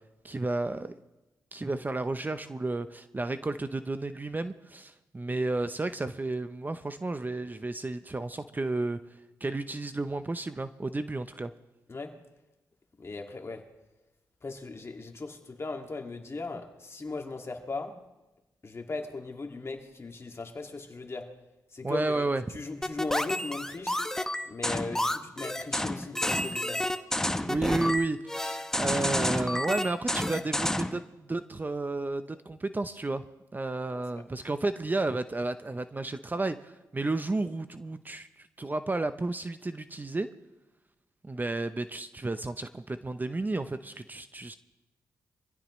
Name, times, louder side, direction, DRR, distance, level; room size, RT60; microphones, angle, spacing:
voice 1, 0.2-1.0 1.5-9.0 9.4-11.5 21.8-22.4 27.4-33.3 33.5-40.3 41.2-44.5, right 2 dB, 25° right, 11 dB, 0.7 m, -32 dB
voice 2, 13.0-13.7 14.4-18.0 18.6-21.3 21.7-24.0 24.5-26.8 33.9-34.2, left 3 dB, 40° left, 3 dB, 2.2 m, -38 dB
sound 1, 22.8-31.0, left 1 dB, 5° left, 0.9 m, -30 dB
23.5 x 16.0 x 3.2 m, 1.0 s
cardioid pair, 65°, 7 cm